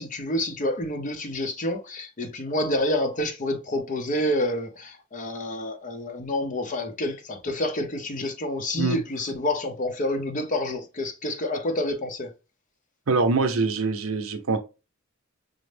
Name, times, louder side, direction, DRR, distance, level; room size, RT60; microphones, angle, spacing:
voice 1, 0.0-12.3, left 1 dB, 40° left, 0.6 m, -28 dB
voice 2, 13.1-14.6, right 3 dB, 80° right, 0.6 m, -24 dB
5.1 x 2.0 x 3.2 m
head